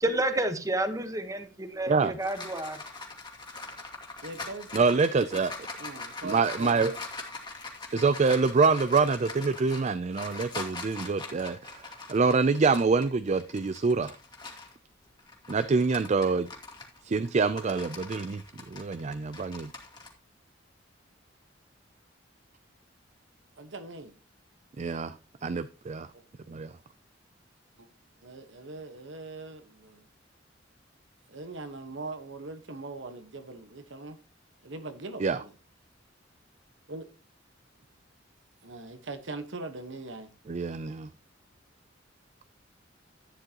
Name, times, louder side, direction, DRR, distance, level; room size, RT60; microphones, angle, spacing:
voice 1, 0.0-2.8, right 1 dB, 20° right, 1.1 m, -30 dB
sound 1, 1.8-14.8 15.2-20.1, left 3 dB, 25° left, 2.2 m, -42 dB
voice 2, 4.2-4.9 5.8-7.0 23.6-24.1 27.8-27.9 28.2-30.0 31.3-34.2 34.6-35.5 36.9-37.0 38.6-40.3, right 3 dB, 70° right, 1.3 m, -41 dB
voice 3, 4.7-5.5 6.2-6.9 7.9-14.1 15.5-16.5 17.0-18.4 18.7-19.7 24.8-25.1 25.4-26.1 26.5-26.7 35.2-35.4 40.5-41.1, right 4 dB, 35° right, 0.4 m, -26 dB
11.5 x 9.3 x 2.9 m
head